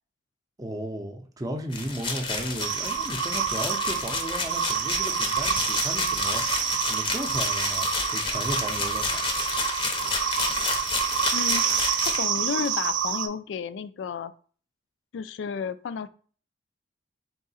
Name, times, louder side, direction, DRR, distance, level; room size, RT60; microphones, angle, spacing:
voice 1, 0.6-6.4 6.8-9.2, right 1 dB, 20° right, 4 dB, 0.5 m, -35 dB
sound 1, 1.7-12.9, left 3 dB, 25° left, 0.6 m, -30 dB
sound 2, 2.6-13.3, right 8 dB, 70° right, 0.4 m, -28 dB
voice 2, 11.3-14.3 15.1-16.1, left 6 dB, 70° left, 14 dB, 0.3 m, -32 dB
3.7 x 2.7 x 4.1 m, 0.43 s
head